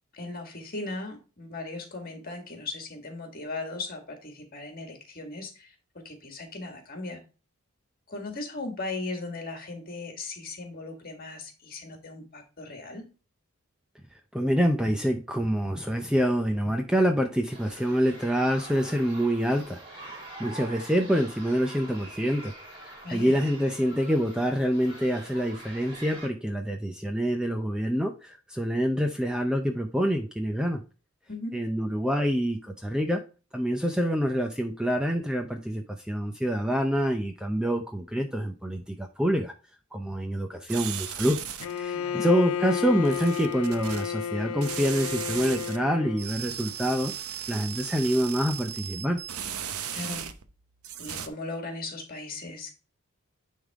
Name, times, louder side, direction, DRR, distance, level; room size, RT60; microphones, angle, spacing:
voice 1, 0.1-5.8 6.1-7.2 8.1-13.1 23.0-23.4 31.3-31.6 41.9-42.3 49.9-50.3 51.0-52.7, left 2 dB, 40° left, 1.9 m, -37 dB
voice 2, 14.3-22.5 22.8-30.8 31.5-33.2 33.5-39.5 39.9-41.4 41.7-47.1 47.5-49.2, equal, 5° right, 0.5 m, -26 dB
sound 1, 17.5-26.3, right 1 dB, 25° right, 3.1 m, -44 dB
sound 2, 40.7-41.8 43.0-44.1 44.6-45.8 46.2-50.5 50.8-51.3, right 9 dB, 80° right, 0.8 m, -36 dB
Bowed string instrument, 41.6-46.3, left 8 dB, 75° left, 0.4 m, -32 dB
10.0 x 3.7 x 3.6 m
head